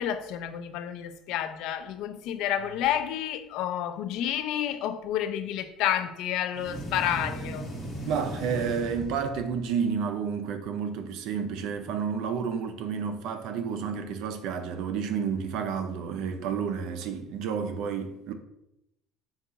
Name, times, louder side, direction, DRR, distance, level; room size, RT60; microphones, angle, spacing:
voice 1, 0.0-7.7, left 10 dB, 70° left, 0.3 m, -30 dB
sound 1, 6.5-9.7, right 1 dB, 20° left, 1.0 m, -37 dB
voice 2, 8.1-18.3, right 6 dB, 70° right, 0.4 m, -30 dB
3.7 x 2.3 x 3.9 m
cardioid pair, 140°, 0 cm